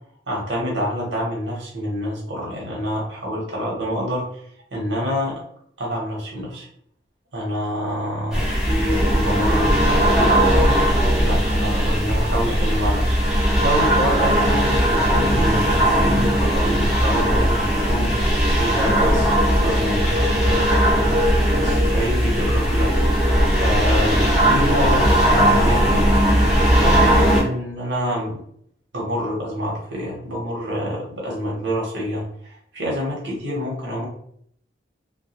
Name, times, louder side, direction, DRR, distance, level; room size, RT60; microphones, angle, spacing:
voice 1, 0.3-4.3 4.7-5.4 5.8-6.7 7.3-18.3 18.6-20.9 21.5-22.9 23.6-26.1 26.8-28.4 28.9-34.1, equal, 85° right, -3 dB, 1.0 m, -27 dB
sound 1, 8.3-27.4, equal, 5° right, 0.6 m, -18 dB
2.2 x 2.2 x 2.9 m, 0.66 s
head